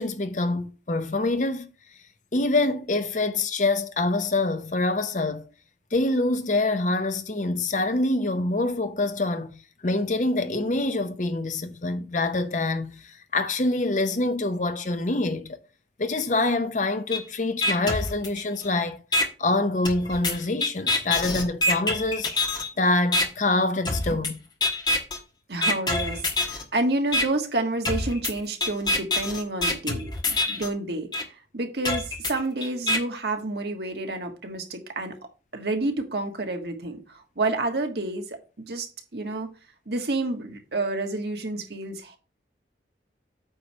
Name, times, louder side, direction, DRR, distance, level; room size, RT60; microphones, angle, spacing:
voice 1, 0.0-1.7 2.3-5.4 5.9-9.5 9.8-15.6 16.0-19.0 19.4-22.3 22.8-24.4, left 2 dB, 40° left, 0.8 m, -25 dB
sound 1, 17.1-17.2 17.6-18.6 19.1-19.2 19.8-22.7 23.1-23.2 23.8-24.3 24.6-25.2 25.6-26.6 27.1-27.2 27.8-30.7 31.1-31.2 31.8-33.0, left 2 dB, 25° left, 1.3 m, -25 dB
voice 2, 25.5-35.1 35.5-38.9 39.1-39.5 39.9-42.2, right 2 dB, 60° right, 1.5 m, -29 dB
8.9 x 3.2 x 6.4 m
head